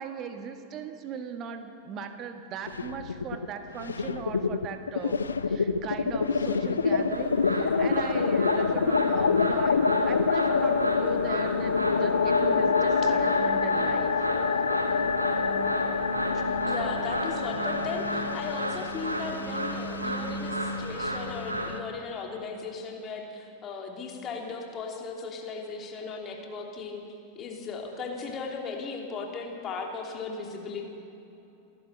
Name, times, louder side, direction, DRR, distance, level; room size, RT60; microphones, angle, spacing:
voice 1, 0.0-14.1 17.3-17.5, right 6 dB, 35° right, 7 dB, 1.6 m, -39 dB
sound 1, 2.7-3.5 3.7-21.8, left 5 dB, 70° left, 0.7 m, -27 dB
sound 2, 7.1-21.7, right 1 dB, 80° right, 2.1 m, -34 dB
voice 2, 16.7-27.0 27.3-30.8, left 4 dB, 30° left, 1 dB, 3.1 m, -37 dB
27.5 x 12.0 x 8.1 m, 2.9 s
figure-of-eight pair, 90°, 0 cm